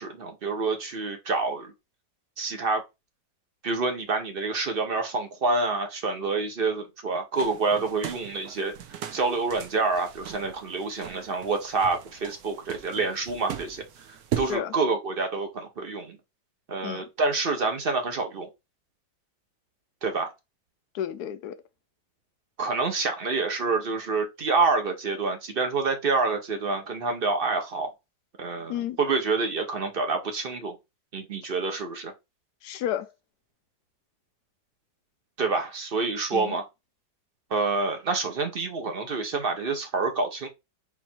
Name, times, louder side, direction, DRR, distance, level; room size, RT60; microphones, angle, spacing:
voice 1, 0.0-1.7 2.4-2.8 3.6-8.7 9.1-13.8 14.4-16.2 16.7-18.5 20.0-20.3 22.6-27.9 28.4-30.8 31.1-32.1 35.4-36.6 37.5-40.5, right 3 dB, 45° right, 0.8 m, -27 dB
sound 1, 7.4-14.6, right 10 dB, 65° right, 1.0 m, -38 dB
voice 2, 14.3-14.7 16.8-17.1 20.9-21.6 28.7-29.0 32.6-33.1 36.3-36.6, left 10 dB, 70° left, 1.0 m, -32 dB
4.3 x 2.7 x 4.2 m
omnidirectional pair, 1.9 m